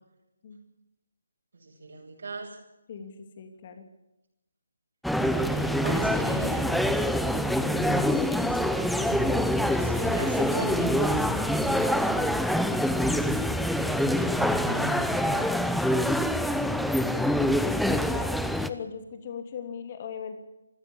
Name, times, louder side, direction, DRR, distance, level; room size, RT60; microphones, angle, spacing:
voice 1, 1.5-2.6 5.3-12.6 13.0-15.6, right 2 dB, 65° right, -2 dB, 7.5 m, -37 dB
voice 2, 2.9-3.8 17.9-18.4 18.6-20.4, left 7 dB, 40° left, 6 dB, 3.0 m, -39 dB
sound 1, 5.0-18.7, left 1 dB, ahead, 0.8 m, -25 dB
26.0 x 14.0 x 7.3 m, 0.92 s
figure-of-eight pair, 150°, 0 cm